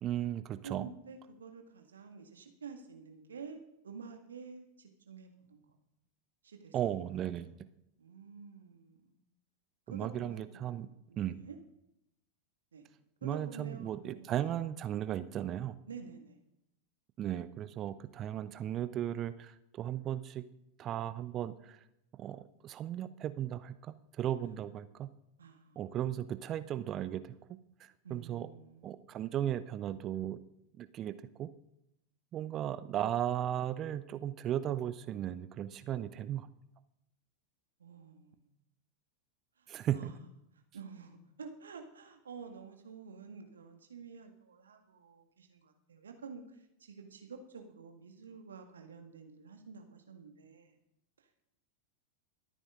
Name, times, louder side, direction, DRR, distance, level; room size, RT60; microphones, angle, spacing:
voice 1, 0.0-0.9 6.7-7.5 9.9-10.9 11.2-11.4 13.2-15.8 17.2-20.4 20.8-21.8 22.2-25.1 25.8-27.3 27.8-28.5 28.8-30.4 30.8-31.1 31.4-31.5 32.3-36.5 39.7-40.1, right 11 dB, 30° right, 14 dB, 0.7 m, -36 dB
voice 2, 0.6-5.8 6.4-6.8 7.4-7.5 8.0-9.2 9.9-10.8 11.1-11.6 12.7-12.8 13.2-14.6 15.9-16.4 24.4-24.5 25.4-25.9 28.0-29.0 37.8-38.5 39.6-40.3 40.7-50.8 51.2-51.4, right 5 dB, 70° right, 5 dB, 1.8 m, -50 dB
24.0 x 9.1 x 3.8 m, 0.85 s
figure-of-eight pair, 90°, 0 cm